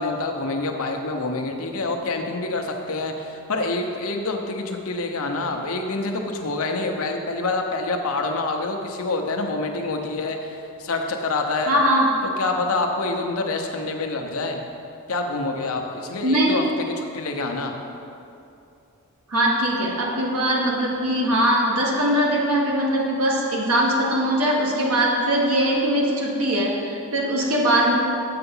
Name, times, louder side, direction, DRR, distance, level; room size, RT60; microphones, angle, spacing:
voice 1, 0.0-11.8 12.4-14.6 15.1-17.7, left 3 dB, 75° left, 3 dB, 0.8 m, -27 dB
voice 2, 11.7-12.1 16.2-16.5 19.3-27.9, right 1 dB, 85° right, -2 dB, 1.6 m, -21 dB
6.8 x 6.8 x 5.5 m, 2.7 s
head